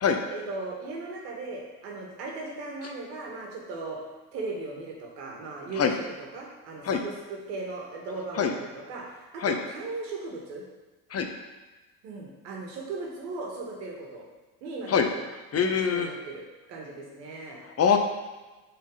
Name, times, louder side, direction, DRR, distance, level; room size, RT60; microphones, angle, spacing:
voice 1, 0.3-4.0 4.3-10.6 12.0-14.3 14.6-15.2 15.6-17.6, right 3 dB, 80° right, -1 dB, 1.8 m, -37 dB
voice 2, 15.5-16.1 17.8-18.0, left 7 dB, 30° left, 5 dB, 0.7 m, -23 dB
7.0 x 4.2 x 3.9 m, 1.2 s
hypercardioid pair, 80°, 49 cm